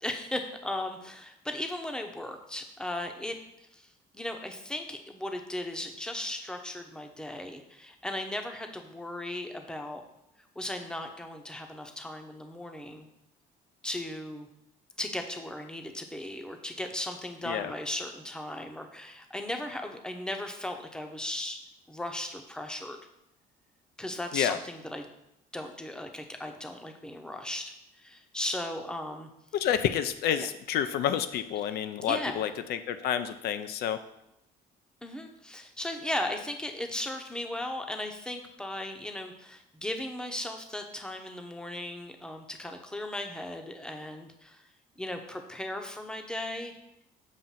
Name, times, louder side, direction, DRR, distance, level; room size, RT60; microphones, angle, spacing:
voice 1, 0.0-3.4 3.7-3.9 4.1-10.0 10.6-13.1 13.8-14.5 15.0-21.6 21.9-23.0 24.0-25.1 25.5-29.3 30.4-30.5 32.0-32.5 35.0-44.6 45.0-46.8, left 1 dB, 5° left, 4 dB, 0.7 m, -37 dB
voice 2, 29.6-34.0, left 9 dB, 70° left, 10 dB, 0.4 m, -29 dB
7.3 x 2.5 x 5.6 m, 0.81 s
cardioid pair, 110°, 17 cm